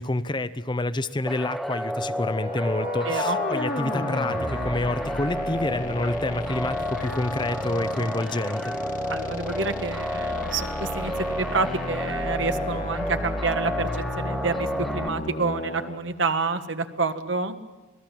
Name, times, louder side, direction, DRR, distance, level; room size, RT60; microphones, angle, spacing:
voice 1, 0.0-8.8, left 2 dB, 25° left, 13 dB, 0.7 m, -28 dB
sound 1, 1.3-15.1, equal, ahead, 0.9 m, -31 dB
sound 2, 2.1-16.0, left 2 dB, 45° left, 1.5 m, -33 dB
voice 2, 3.0-3.4 9.1-17.5, right 4 dB, 80° right, 8 dB, 1.5 m, -28 dB
26.5 x 19.0 x 7.6 m, 1.2 s
head